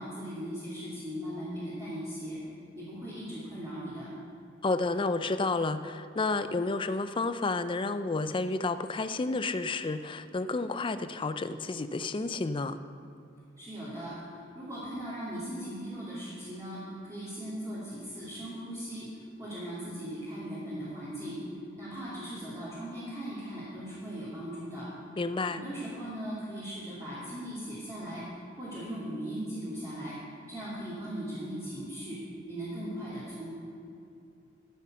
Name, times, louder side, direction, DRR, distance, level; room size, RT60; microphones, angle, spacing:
voice 1, 0.0-2.4 2.8-4.1 13.6-14.2 14.5-19.1 19.4-21.4 21.8-24.9 25.5-28.2 28.6-30.1 30.5-32.2 32.5-33.6, equal, 20° right, -10 dB, 2.6 m, -38 dB
voice 2, 4.6-12.8 25.2-25.6, left 3 dB, 25° left, 11 dB, 0.4 m, -31 dB
13.0 x 7.2 x 6.1 m, 2.7 s
head